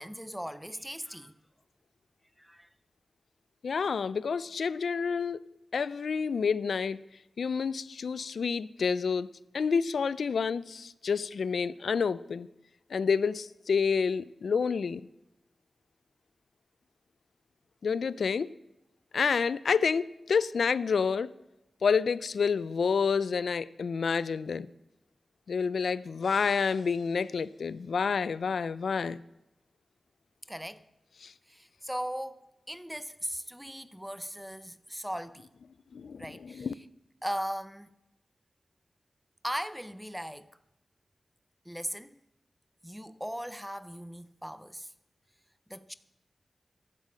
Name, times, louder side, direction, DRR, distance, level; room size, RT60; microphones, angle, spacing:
voice 1, 0.0-1.3 2.4-2.7 30.5-30.8 31.5-35.5 36.2-36.7 37.2-37.9 39.4-40.5 41.7-42.2 42.8-44.9 45.7-45.9, equal, ahead, 0.5 m, -38 dB
voice 2, 3.6-5.4 5.7-7.0 7.4-9.3 9.5-12.5 12.9-15.0 17.8-18.5 19.1-21.3 21.8-24.7 25.5-29.2 31.2-31.3 35.9-36.7, left 5 dB, 75° left, 0.4 m, -29 dB
sound 1, 26.2-28.0, left 2 dB, 60° left, 3.4 m, -56 dB
15.0 x 11.5 x 5.0 m
wide cardioid pair, 150°, 0 cm